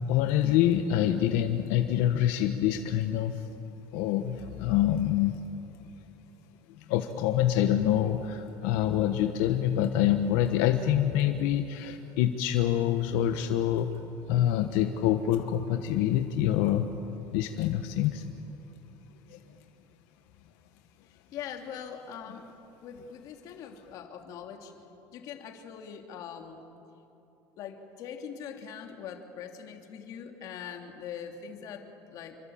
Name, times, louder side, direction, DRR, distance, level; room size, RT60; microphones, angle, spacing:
voice 1, 0.1-3.5 3.9-5.4 6.9-13.9 14.3-16.9 17.3-18.2 19.3-19.4, left 11 dB, 80° left, 7 dB, 1.3 m, -26 dB
voice 2, 21.0-22.5 22.8-26.6 27.6-32.4, left 7 dB, 45° left, 4 dB, 2.7 m, -42 dB
27.5 x 24.5 x 8.8 m, 2.9 s
cardioid pair, 175°, 8 cm